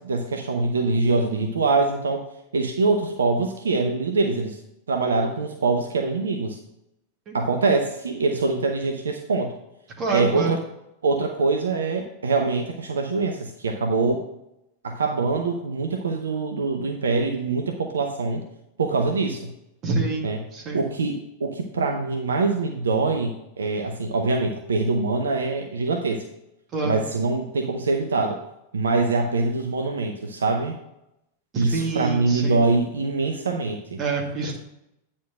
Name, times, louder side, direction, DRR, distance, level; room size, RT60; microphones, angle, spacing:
voice 1, 0.0-2.2 2.5-4.6 4.9-6.6 7.3-9.5 10.1-10.6 11.0-14.3 14.8-18.4 18.8-19.5 20.2-20.4 20.7-26.2 26.8-28.4 28.7-30.7 31.6-34.0, right 3 dB, 70° right, 4 dB, 0.7 m, -24 dB
voice 2, 10.0-10.6 19.8-20.9 26.7-27.0 31.5-32.6 34.0-34.5, right 3 dB, 30° right, 0 dB, 2.2 m, -27 dB
9.2 x 4.4 x 6.1 m, 0.86 s
figure-of-eight pair, 90°, 0 cm